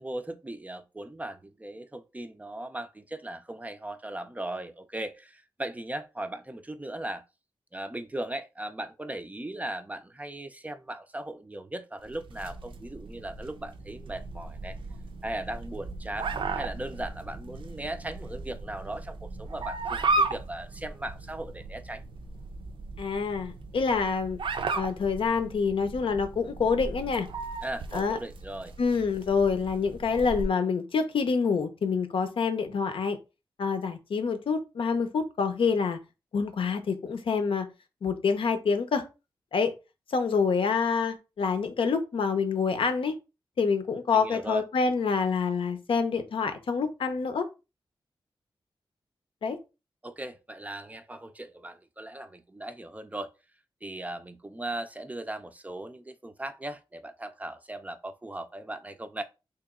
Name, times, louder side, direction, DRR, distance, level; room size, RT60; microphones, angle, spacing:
voice 1, 0.0-7.2 7.7-14.8 15.2-22.0 27.6-28.7 44.1-44.6 50.0-53.3 53.8-59.2, right 1 dB, 15° right, 0.4 m, -38 dB
sound 1, 12.1-30.5, right 3 dB, 70° right, 0.5 m, -36 dB
voice 2, 23.0-24.4 24.7-27.3 27.9-28.2 28.8-33.2 33.6-36.0 36.3-37.7 38.0-39.0 39.5-39.7 40.1-43.1 43.6-47.5 49.4-49.6, left 5 dB, 80° left, 0.6 m, -27 dB
3.0 x 2.8 x 3.6 m
wide cardioid pair, 100°, 9 cm